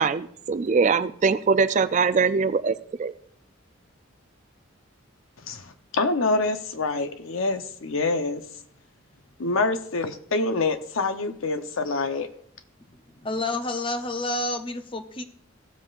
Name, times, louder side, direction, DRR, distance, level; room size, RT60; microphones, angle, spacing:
voice 1, 0.0-2.7 3.0-3.1, right 5 dB, 35° right, 13 dB, 0.3 m, -22 dB
voice 2, 5.5-8.4 9.4-12.3, left 3 dB, 80° left, 9 dB, 0.8 m, -26 dB
voice 3, 13.2-15.2, left 2 dB, 25° left, 7 dB, 0.6 m, -29 dB
16.5 x 7.5 x 2.5 m, 0.64 s
head